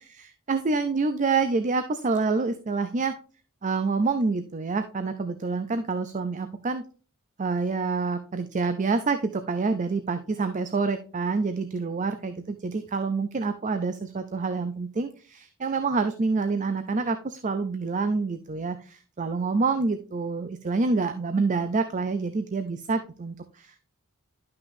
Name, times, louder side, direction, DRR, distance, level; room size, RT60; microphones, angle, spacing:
voice 1, 0.0-3.2 3.6-6.8 7.4-23.9, right 4 dB, 35° right, 9 dB, 0.5 m, -27 dB
11.5 x 5.7 x 2.6 m, 0.38 s
head